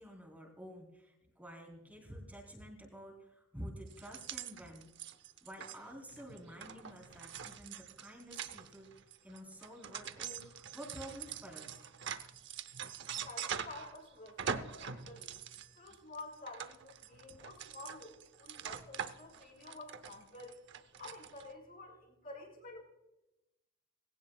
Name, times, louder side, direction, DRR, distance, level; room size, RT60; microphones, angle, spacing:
voice 1, 0.0-4.9 5.4-8.9 9.2-11.8 15.9-16.0, equal, 10° right, -2 dB, 3.3 m, -50 dB
sound 1, 3.9-14.0 14.3-21.5, right 7 dB, 60° right, 0.8 m, -44 dB
voice 2, 13.2-15.4 15.8-20.6 20.9-22.8, left 2 dB, 50° left, -1 dB, 5.8 m, -50 dB
19.5 x 17.0 x 2.4 m, 0.97 s
head